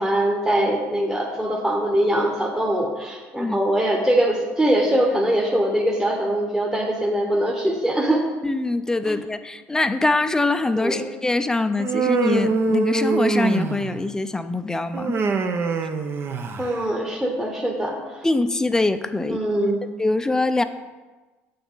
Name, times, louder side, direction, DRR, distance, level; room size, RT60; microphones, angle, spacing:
voice 1, 0.0-8.2 9.1-9.2 10.8-11.0 16.6-18.2 19.3-19.8, right 1 dB, 10° right, -2 dB, 1.1 m, -22 dB
voice 2, 8.4-15.1 18.2-19.4 20.0-20.6, left 2 dB, 10° left, 10 dB, 0.5 m, -23 dB
Human voice, 11.8-14.1 14.9-16.8, right 4 dB, 45° right, 0.7 m, -23 dB
8.3 x 6.9 x 3.9 m, 1.3 s
supercardioid pair, 95°, 6 cm